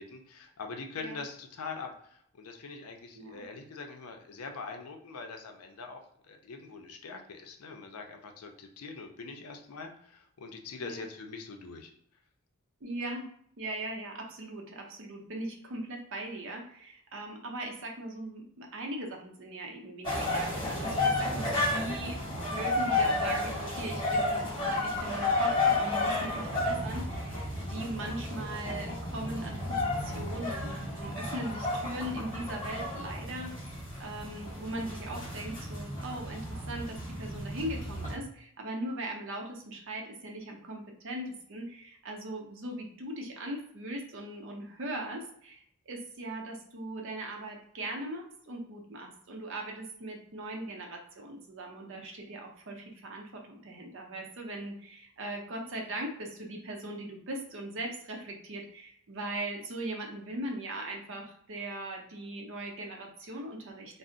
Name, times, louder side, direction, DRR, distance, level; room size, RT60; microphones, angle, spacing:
voice 1, 0.0-6.0 6.3-11.9, left 4 dB, 80° left, 5 dB, 0.5 m, -43 dB
voice 2, 12.8-13.3 13.6-22.2 22.5-64.0, right 1 dB, 55° right, 1 dB, 0.6 m, -39 dB
sound 1, 20.0-38.2, left 2 dB, 20° left, 1.2 m, -32 dB
2.5 x 2.0 x 3.8 m, 0.68 s
head